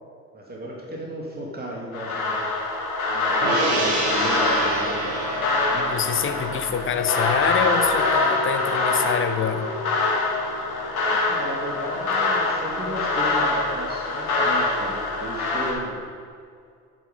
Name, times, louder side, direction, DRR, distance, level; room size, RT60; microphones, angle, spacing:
voice 1, 0.3-2.4 3.1-5.0 11.0-16.0, right 1 dB, 20° right, -2 dB, 2.4 m, -35 dB
sound 1, 1.9-15.7, left 3 dB, 75° left, 2.2 m, -24 dB
Gong, 3.4-10.0 10.4-10.5, right 2 dB, 60° right, 2.7 m, -30 dB
voice 2, 5.7-9.7, left 8 dB, 30° left, 9 dB, 0.9 m, -26 dB
11.5 x 8.6 x 5.2 m, 2.2 s
figure-of-eight pair, 65°, 43 cm